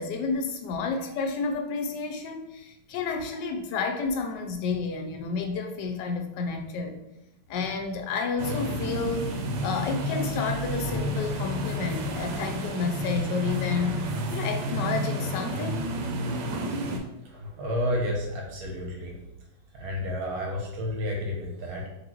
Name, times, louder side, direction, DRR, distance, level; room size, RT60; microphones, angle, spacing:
voice 1, 0.0-7.0 7.5-9.2 9.6-14.0 14.3-15.9, left 4 dB, 80° left, 4 dB, 1.2 m, -30 dB
sound 1, 8.4-17.0, equal, 85° right, 1.3 m, -30 dB
voice 2, 17.2-19.2 19.7-21.9, left 1 dB, 65° right, 0 dB, 1.2 m, -31 dB
4.0 x 3.0 x 2.9 m, 0.85 s
omnidirectional pair, 1.9 m